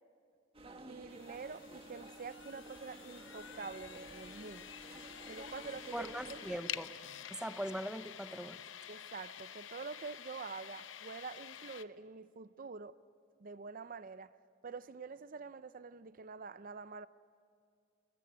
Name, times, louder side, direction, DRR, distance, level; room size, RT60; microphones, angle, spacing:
sound 1, 0.5-6.6, right 1 dB, 30° right, 1.7 m, -52 dB
voice 1, 0.9-4.8 5.2-6.4 8.9-12.9 13.4-14.3 14.6-17.1, right 4 dB, 45° right, 0.5 m, -46 dB
sound 2, 1.1-11.8, left 10 dB, 85° left, 0.8 m, -49 dB
voice 2, 5.9-6.9 7.3-8.6, equal, 5° right, 0.6 m, -41 dB
20.5 x 20.0 x 9.4 m
head